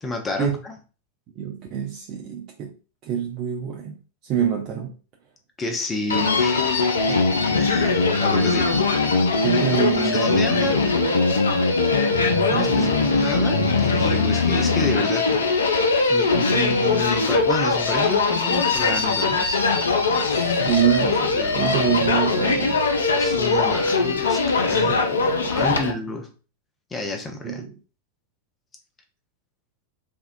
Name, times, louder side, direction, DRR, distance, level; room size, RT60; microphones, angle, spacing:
voice 1, 0.0-0.7 5.6-7.2 7.6-8.7 10.1-10.8 12.5-15.2 16.1-19.6 20.6-20.8 21.4-21.7 23.2-25.0 25.5-26.3 26.9-27.6, left 2 dB, 20° left, 0.6 m, -30 dB
voice 2, 1.4-2.7 3.0-4.0 4.2-4.9 9.4-10.7 12.4-13.3 20.3-22.9 24.9-25.7 27.4-27.7, right 9 dB, 40° right, 0.5 m, -26 dB
Human voice, 6.1-25.9, left 3 dB, 70° left, 0.4 m, -21 dB
3.5 x 2.3 x 2.5 m
figure-of-eight pair, 90°, 0 cm